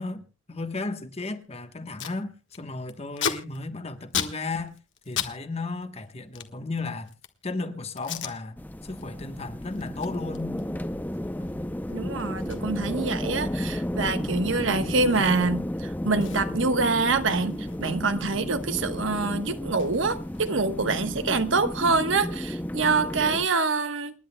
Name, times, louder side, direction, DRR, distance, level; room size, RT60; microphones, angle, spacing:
voice 1, 0.0-4.8 5.1-7.1 7.4-10.6, left 3 dB, 30° left, 1.2 m, -34 dB
Packing tape duct tape, 1.4-1.5 1.7-2.2 2.5-5.4 5.6-7.4 8.0-8.4 8.8-9.0 9.4-15.6 15.9-16.0 16.2-18.6 18.8-20.8, left 8 dB, 65° left, 1.5 m, -37 dB
sound 1, 8.6-23.5, left 1 dB, 10° left, 0.6 m, -33 dB
voice 2, 11.9-24.1, right 3 dB, 70° right, 1.2 m, -25 dB
29.0 x 10.5 x 2.3 m
head